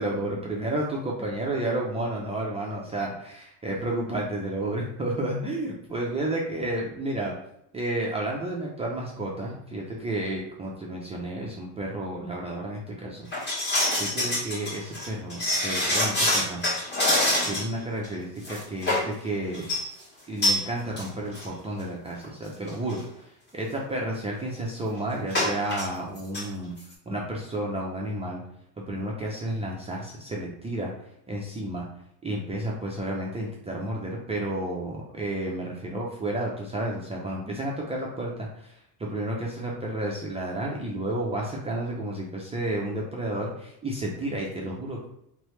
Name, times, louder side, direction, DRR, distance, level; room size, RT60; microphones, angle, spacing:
voice 1, 0.0-7.3 7.7-13.3 14.0-16.6 17.5-19.7 20.3-26.7 27.1-28.4 28.8-30.9 31.3-31.9 32.2-45.1, right 1 dB, 15° right, -3 dB, 0.5 m, -31 dB
sound 1, 13.3-17.8 18.0-18.1 18.4-19.1 19.5-19.8 20.4-20.6 21.0-21.1 21.3-21.5 22.2-22.3 22.7-22.9 25.3-25.9 26.2-26.4 26.8-26.9, left 1 dB, 20° left, 1.5 m, -25 dB
3.6 x 3.2 x 3.1 m, 0.74 s
supercardioid pair, 125°, 48 cm